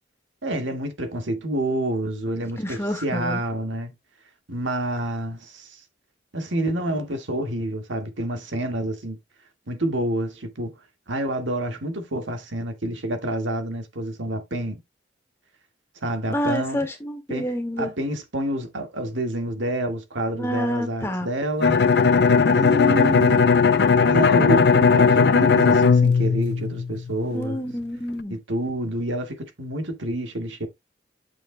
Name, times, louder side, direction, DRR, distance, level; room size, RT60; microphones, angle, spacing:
voice 1, 0.4-3.9 4.5-5.8 6.3-9.2 9.7-10.7 11.1-14.8 16.0-16.9 17.3-17.5 17.8-21.8 22.5-23.5 24.1-27.6 28.3-30.7, right 1 dB, 90° right, 1.8 m, -28 dB
voice 2, 2.6-3.4 16.3-17.9 20.4-21.3 27.3-28.4, equal, 15° left, 1.7 m, -28 dB
Bowed string instrument, 21.6-27.3, left 5 dB, 60° left, 0.5 m, -17 dB
8.8 x 6.5 x 2.2 m
head